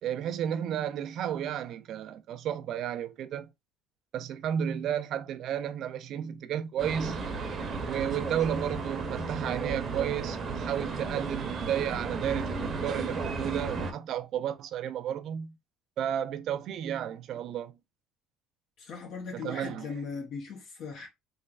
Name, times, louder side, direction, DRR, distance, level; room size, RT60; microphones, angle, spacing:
voice 1, 0.0-3.5 4.1-7.2 7.9-15.6 16.0-17.8 19.3-20.0, right 9 dB, 55° right, 0.4 m, -32 dB
sound 1, 6.8-13.9, right 4 dB, 35° right, 0.8 m, -34 dB
voice 2, 18.8-21.1, left 5 dB, 60° left, 1.0 m, -39 dB
3.2 x 3.1 x 2.4 m
supercardioid pair, 105°, 0 cm